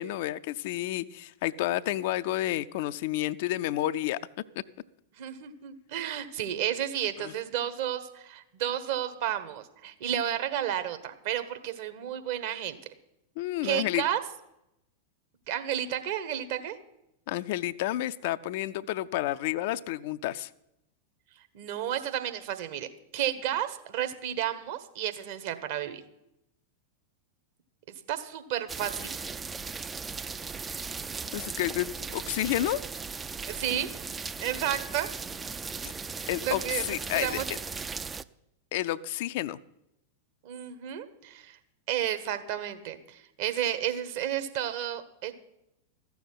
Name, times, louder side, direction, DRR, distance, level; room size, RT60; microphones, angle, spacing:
voice 1, 0.0-4.2 7.2-7.3 13.4-14.0 17.3-20.5 31.3-32.8 36.3-37.4 38.7-39.6, left 14 dB, 50° left, 14 dB, 0.5 m, -30 dB
voice 2, 5.2-12.8 13.6-14.2 15.5-16.7 21.5-26.0 27.9-29.2 33.5-33.9 34.4-35.1 36.4-36.8 37.1-37.4 40.4-41.6 41.9-45.3, right 11 dB, 50° right, 9 dB, 1.4 m, -32 dB
sound 1, 28.7-38.2, right 5 dB, 15° right, 0.4 m, -37 dB
14.0 x 7.1 x 9.6 m, 0.84 s
figure-of-eight pair, 90°, 0 cm